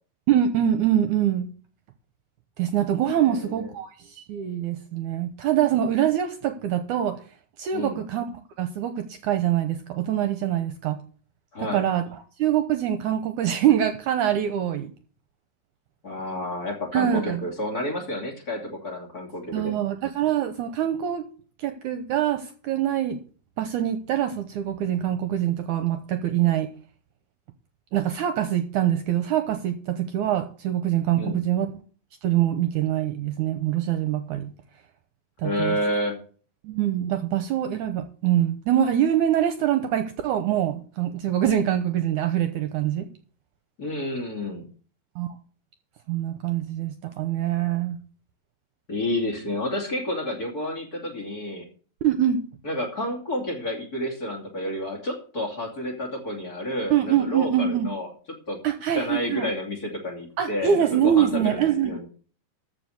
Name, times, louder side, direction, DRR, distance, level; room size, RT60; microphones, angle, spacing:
voice 1, 0.3-1.5 2.6-7.2 7.6-8.3 8.6-11.0 11.6-12.0 12.4-14.9 16.9-17.4 19.5-21.2 21.6-23.2 23.6-26.7 27.9-31.7 32.2-34.5 35.4-35.8 36.6-43.1 45.2-45.3 46.1-48.0 52.0-52.4 56.9-57.9 58.6-59.5 60.4-62.0, right 10 dB, 70° right, 9 dB, 2.1 m, -24 dB
voice 2, 3.1-3.7 7.7-8.0 11.5-11.8 16.0-19.7 31.1-31.4 35.4-36.2 43.8-44.7 48.9-51.7 52.6-58.1 58.5-58.6 58.9-62.1, left 1 dB, 30° left, 0 dB, 3.0 m, -30 dB
14.0 x 5.2 x 7.8 m, 0.40 s
omnidirectional pair, 4.0 m